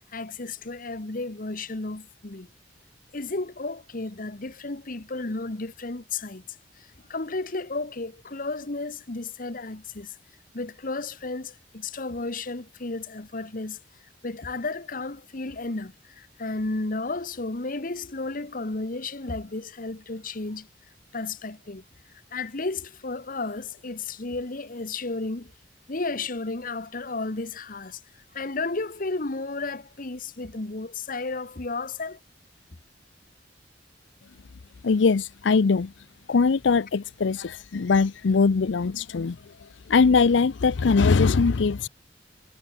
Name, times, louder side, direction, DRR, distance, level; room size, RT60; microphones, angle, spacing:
voice 1, 0.1-2.5 3.1-6.4 6.8-10.2 10.5-13.8 14.2-20.7 21.1-21.8 22.3-25.5 25.9-28.0 28.3-32.2, left 3 dB, 50° left, 1.3 m, -33 dB
voice 2, 34.8-35.9 36.3-39.4 39.9-41.9, left 4 dB, 85° left, 0.5 m, -21 dB
head